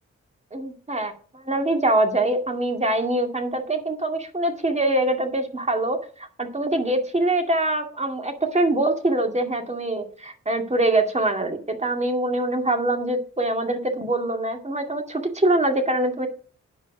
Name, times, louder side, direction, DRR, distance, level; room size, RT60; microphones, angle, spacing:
voice 1, 0.5-1.1 1.5-16.3, right 1 dB, 25° right, 4 dB, 2.2 m, -24 dB
10.0 x 5.4 x 6.0 m, 0.42 s
cardioid pair, 60°, 29 cm